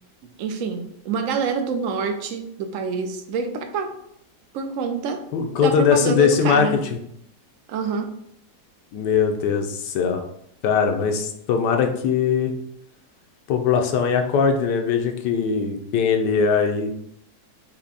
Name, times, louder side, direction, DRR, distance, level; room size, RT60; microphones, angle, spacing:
voice 1, 0.4-3.9 4.5-5.2 5.6-6.8 7.7-8.1, right 5 dB, 65° right, 6 dB, 0.8 m, -26 dB
voice 2, 5.3-6.7 8.9-10.2 10.6-12.5 13.5-16.9, left 6 dB, 85° left, 4 dB, 1.3 m, -20 dB
5.9 x 2.2 x 4.0 m, 0.73 s
omnidirectional pair, 1.8 m